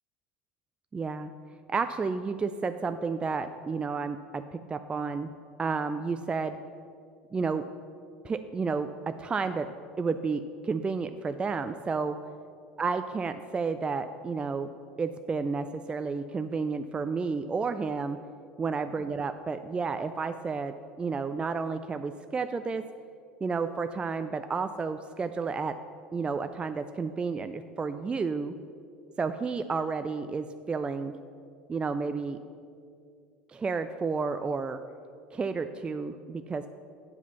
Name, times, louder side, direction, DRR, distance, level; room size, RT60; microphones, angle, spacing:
voice 1, 0.9-1.3 1.7-5.3 5.6-6.6 7.3-7.7 8.2-12.2 12.8-14.7 15.0-18.2 18.6-22.9 23.4-25.8 26.1-28.5 29.2-31.2 31.7-32.4 33.5-34.8 35.3-36.7, right 4 dB, 20° right, 9 dB, 0.3 m, -31 dB
7.9 x 4.9 x 6.8 m, 2.4 s
hypercardioid pair, 80°, 5 cm